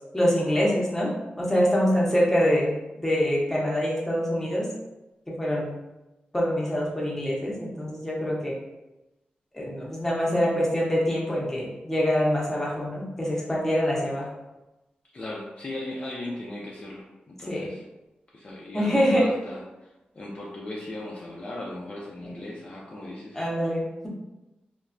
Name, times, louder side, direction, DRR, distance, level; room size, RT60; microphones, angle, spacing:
voice 1, 0.1-1.1 1.4-2.7 3.0-4.7 5.3-5.7 6.3-8.6 9.5-14.3 17.5-17.7 18.7-19.3 23.3-24.1, equal, 10° left, -5 dB, 0.7 m, -25 dB
voice 2, 15.1-17.8 18.3-23.4, left 1 dB, 35° left, -4 dB, 0.4 m, -37 dB
3.1 x 2.1 x 2.5 m, 1.0 s
wide cardioid pair, 110°, 3 cm